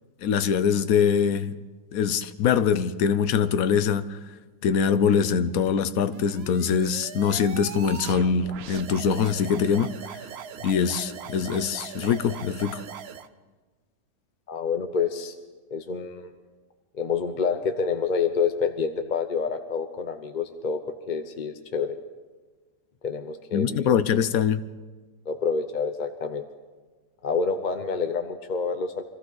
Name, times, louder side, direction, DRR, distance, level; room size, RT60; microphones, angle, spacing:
voice 1, 0.2-1.5 1.9-4.2 4.6-9.9 10.6-12.8 23.5-24.6, left 7 dB, 65° left, 1.0 m, -23 dB
sound 1, 6.1-13.3, right 8 dB, 65° right, 0.6 m, -40 dB
voice 2, 14.5-15.3 15.7-16.3 16.9-20.8 21.1-22.0 23.0-23.9 25.3-26.4 27.2-29.0, left 5 dB, 45° left, 0.6 m, -28 dB
24.5 x 15.0 x 4.0 m
omnidirectional pair, 1.8 m